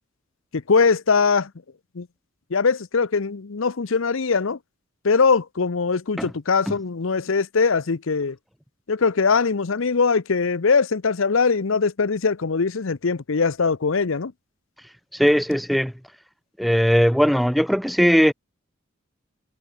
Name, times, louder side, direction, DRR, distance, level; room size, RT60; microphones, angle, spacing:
voice 1, 0.5-1.5 1.9-2.1 2.5-4.6 5.0-8.4 8.9-14.3, left 5 dB, 70° left, 0.7 m, -21 dB
voice 2, 15.1-15.9 16.6-18.3, equal, ahead, 0.3 m, -19 dB
head